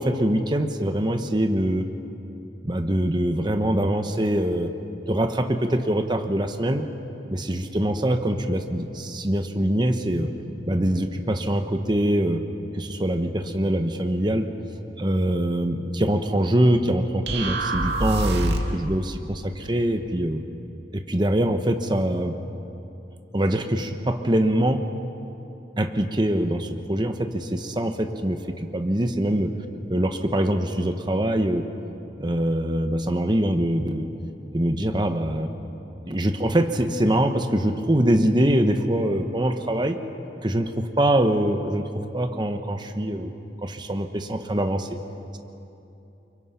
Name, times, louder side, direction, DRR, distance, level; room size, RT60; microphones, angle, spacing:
voice 1, 0.0-1.9 2.6-4.7 5.1-6.9 7.3-10.3 10.7-12.4 12.7-14.5 15.0-20.4 20.9-22.4 23.3-24.9 25.8-29.5 29.9-31.7 32.2-34.1 34.5-35.5 36.0-40.0 40.4-41.9 42.1-43.3 43.6-44.9, right 1 dB, 25° right, 6 dB, 1.1 m, -23 dB
sound 1, 17.3-18.8, right 1 dB, 75° right, 2.1 m, -25 dB
29.0 x 25.0 x 5.8 m, 2.9 s
head